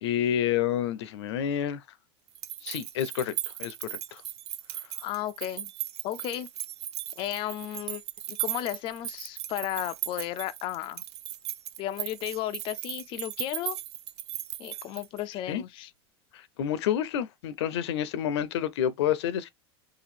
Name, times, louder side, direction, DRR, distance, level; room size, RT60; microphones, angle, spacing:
voice 1, 0.0-1.8 2.6-4.2 15.5-15.6 16.3-19.5, left 10 dB, 85° left, 0.6 m, -29 dB
sound 1, 2.3-15.3, right 12 dB, 90° right, 0.6 m, -37 dB
voice 2, 5.0-5.7 6.0-6.5 7.2-8.0 8.3-11.0 11.8-13.8 14.6-15.9, left 13 dB, 40° left, 0.3 m, -34 dB
2.9 x 2.4 x 4.1 m
supercardioid pair, 130°, 14 cm